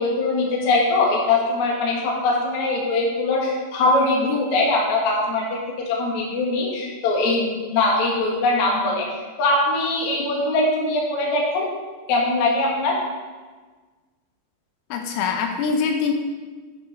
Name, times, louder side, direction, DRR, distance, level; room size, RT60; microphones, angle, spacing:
voice 1, 0.0-5.4 5.9-9.1 9.4-11.7 12.1-13.0, left 2 dB, 60° left, -3 dB, 1.9 m, -21 dB
voice 2, 14.9-16.1, left 5 dB, 80° left, 3 dB, 3.1 m, -23 dB
9.6 x 6.3 x 5.1 m, 1.4 s
omnidirectional pair, 6.0 m